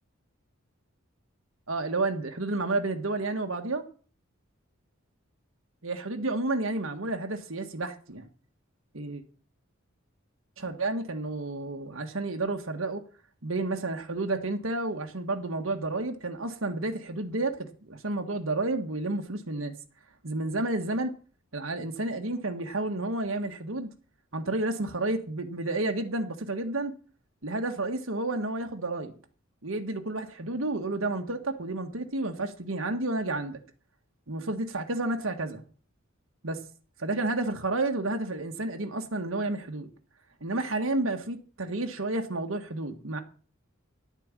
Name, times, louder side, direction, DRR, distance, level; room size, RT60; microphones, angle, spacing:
voice 1, 1.7-3.8 5.8-8.3 8.9-9.2 10.6-13.0 13.4-19.7 20.2-21.1 21.5-23.9 24.3-26.9 27.4-29.1 29.6-33.6 34.3-35.6 36.4-36.6 37.0-39.9 40.4-43.2, right 2 dB, 75° right, 1.6 m, -31 dB
11.5 x 9.0 x 7.4 m
head